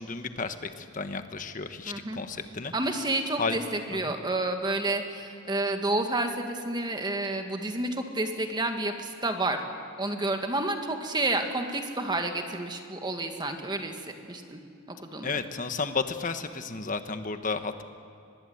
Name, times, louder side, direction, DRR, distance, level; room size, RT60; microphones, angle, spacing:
voice 1, 0.0-2.7 3.4-3.6 3.9-4.1 15.2-17.8, left 4 dB, 40° left, 9 dB, 1.2 m, -32 dB
voice 2, 1.9-2.2 2.7-9.6 10.0-14.0 14.3-14.6 14.9-15.4, right 2 dB, 20° right, 5 dB, 1.8 m, -30 dB
24.0 x 20.5 x 8.1 m, 2.5 s
head